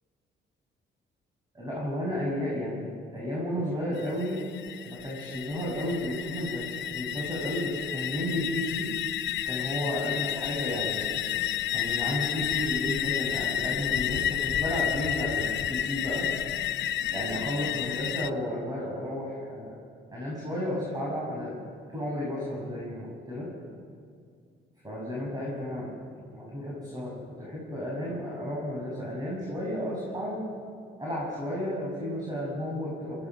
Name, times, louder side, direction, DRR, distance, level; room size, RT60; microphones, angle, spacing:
voice 1, 1.5-4.4 4.7-8.9 9.5-11.1 11.7-16.3 17.1-19.8 20.1-21.6 21.9-23.5 24.8-25.9 26.2-30.4 31.0-33.3, equal, 20° right, -5 dB, 7.1 m, -33 dB
sound 1, 4.0-18.3, left 11 dB, 65° left, 0.6 m, -31 dB
26.0 x 17.0 x 6.3 m, 2.1 s
cardioid pair, 90°, 20 cm